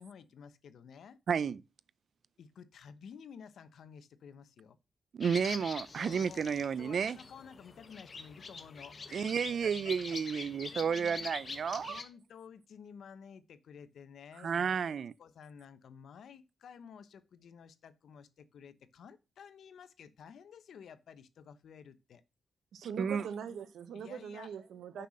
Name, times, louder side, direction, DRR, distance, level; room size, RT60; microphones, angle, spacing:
voice 1, 0.0-1.2 2.4-4.8 6.0-6.5 6.8-9.4 9.6-11.3 11.9-22.2 23.9-24.5 25.0-25.1, left 7 dB, 75° left, 1.0 m, -53 dB
voice 2, 1.3-1.6 5.1-7.2 9.1-12.0 14.4-15.1 23.0-23.2, right 6 dB, 60° right, 0.4 m, -32 dB
sound 1, 5.2-12.0, left 4 dB, 40° left, 1.4 m, -45 dB
voice 3, 22.7-25.1, right 7 dB, 90° right, 1.2 m, -42 dB
6.7 x 5.8 x 6.4 m
cardioid pair, 100°, 0 cm